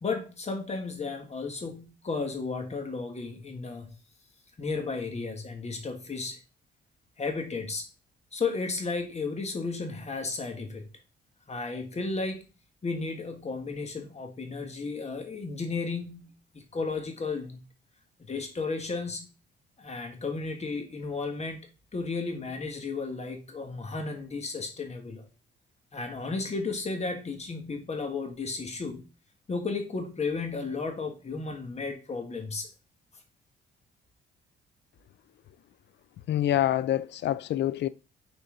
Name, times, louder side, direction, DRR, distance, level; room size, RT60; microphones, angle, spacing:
voice 1, 0.0-4.0 4.6-6.4 7.2-7.9 8.3-10.9 11.5-12.5 12.8-17.6 18.2-19.3 19.8-21.6 21.9-25.3 25.9-29.1 29.5-32.7, left 4 dB, 35° left, 1.7 m, -33 dB
voice 2, 36.3-37.9, left 12 dB, 65° left, 0.5 m, -26 dB
6.9 x 4.3 x 3.9 m
cardioid pair, 90°, 20 cm